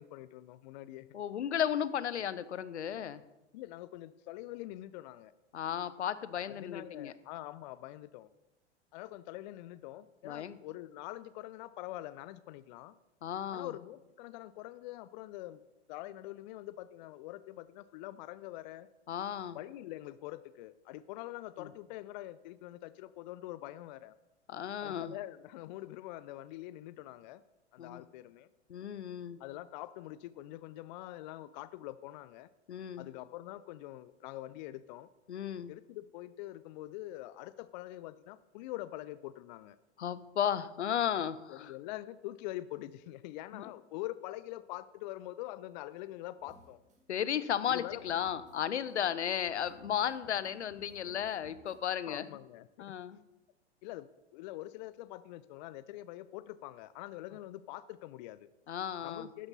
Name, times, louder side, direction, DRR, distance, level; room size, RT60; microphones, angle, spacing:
voice 1, 0.0-1.1 3.5-5.3 6.5-8.3 8.9-13.0 13.5-15.6 15.9-18.9 19.5-24.1 24.8-27.4 27.7-28.5 29.4-32.5 33.0-35.1 35.7-39.8 41.5-46.8 47.7-48.0 52.0-52.9 53.8-58.5 59.0-59.5, left 15 dB, 40° left, 16 dB, 0.5 m, -44 dB
voice 2, 1.1-3.2 5.5-7.1 10.2-10.6 13.2-13.7 19.1-19.6 21.6-21.7 24.5-25.1 27.8-28.0 28.7-29.4 32.7-33.1 35.3-35.7 40.0-41.7 43.5-43.6 47.1-52.2 52.8-53.2 58.7-59.3, left 9 dB, 75° left, 16 dB, 0.8 m, -34 dB
sound 1, 46.4-51.9, right 1 dB, 20° right, 2.2 m, -60 dB
12.5 x 9.7 x 4.1 m, 0.95 s
figure-of-eight pair, 100°, 34 cm